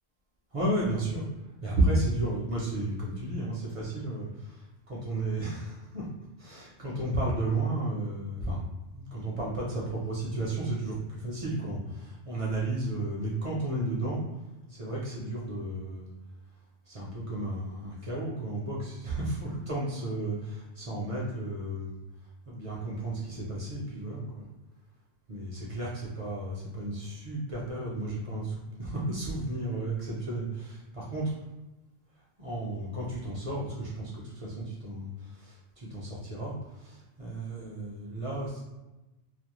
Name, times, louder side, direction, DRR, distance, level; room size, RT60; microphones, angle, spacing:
voice 1, 0.5-1.2 1.6-4.6 4.9-6.0 6.4-8.6 8.9-14.2 14.7-16.1 16.9-22.0 22.5-24.5 25.3-31.3 32.4-38.7, right 2 dB, 45° right, -5 dB, 0.5 m, -33 dB
2.4 x 2.0 x 2.9 m, 1.0 s
omnidirectional pair, 1.1 m